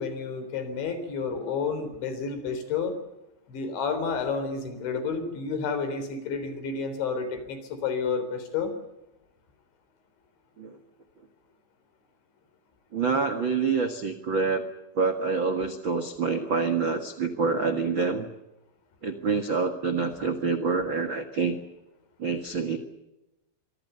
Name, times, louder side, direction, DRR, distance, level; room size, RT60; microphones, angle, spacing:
voice 1, 0.0-3.0 3.5-8.7, left 5 dB, 85° left, 10 dB, 6.1 m, -30 dB
voice 2, 12.9-14.6 14.9-18.2 19.0-21.6 22.2-22.8, right 4 dB, 65° right, 7 dB, 1.2 m, -26 dB
25.0 x 25.0 x 6.8 m, 0.94 s
omnidirectional pair, 5.1 m